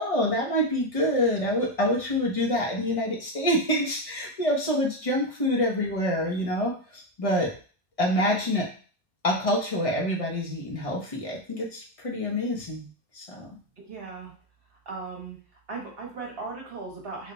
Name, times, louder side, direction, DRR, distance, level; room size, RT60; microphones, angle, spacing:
voice 1, 0.0-7.5 8.0-8.7 9.2-12.9 13.2-13.5, equal, 35° left, -2 dB, 0.7 m, -26 dB
voice 2, 13.8-14.3 14.8-15.4 15.7-17.3, right 4 dB, 50° right, -1 dB, 1.3 m, -37 dB
3.3 x 2.1 x 3.9 m, 0.39 s
omnidirectional pair, 1.3 m